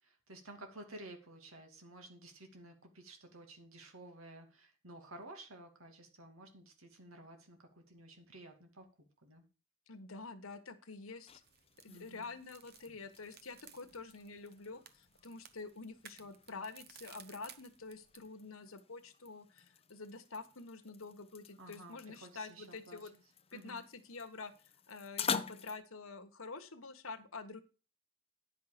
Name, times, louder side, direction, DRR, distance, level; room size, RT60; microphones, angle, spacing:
voice 1, 0.0-8.9 9.2-9.4 11.9-12.3 21.6-23.2 23.5-23.8, right 1 dB, 80° right, 4 dB, 2.4 m, -53 dB
voice 2, 9.9-11.3 11.8-23.1 23.5-24.5 24.9-27.6, left 4 dB, 75° left, 9 dB, 1.4 m, -47 dB
sound 1, 10.9-25.8, left 6 dB, 30° left, 0.6 m, -47 dB
sound 2, 11.3-18.3, right 8 dB, 50° right, 1.0 m, -59 dB
10.0 x 5.7 x 6.6 m, 0.33 s
head